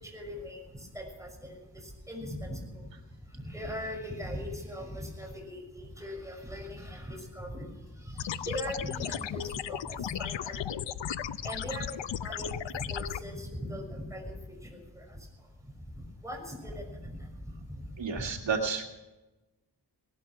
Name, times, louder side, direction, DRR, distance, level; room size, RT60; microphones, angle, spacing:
voice 1, 0.0-2.9 3.3-7.8 8.0-10.9 11.4-14.3 14.6-15.2 16.2-17.2 17.7-17.9 18.2-18.3, equal, 5° right, 1 dB, 5.9 m, -40 dB
sound 1, 8.2-13.2, left 10 dB, 80° left, 0.7 m, -35 dB
voice 2, 18.0-18.8, right 5 dB, 90° right, 3 dB, 2.0 m, -31 dB
18.5 x 12.5 x 5.9 m, 1.1 s
wide cardioid pair, 95°, 43 cm